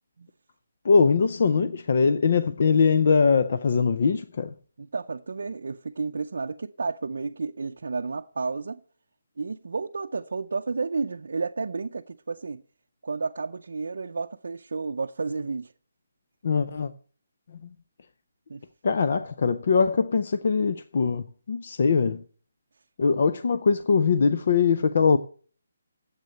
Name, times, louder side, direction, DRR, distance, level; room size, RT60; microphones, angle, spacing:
voice 1, 0.8-4.5 16.4-16.9 17.5-17.7 18.8-22.2 23.0-25.2, left 5 dB, 40° left, 0.5 m, -22 dB
voice 2, 4.8-8.8 9.4-12.6 13.0-15.7 18.5-18.6, right 4 dB, 60° right, 0.6 m, -31 dB
9.4 x 8.0 x 7.9 m
hypercardioid pair, 180°, 0 cm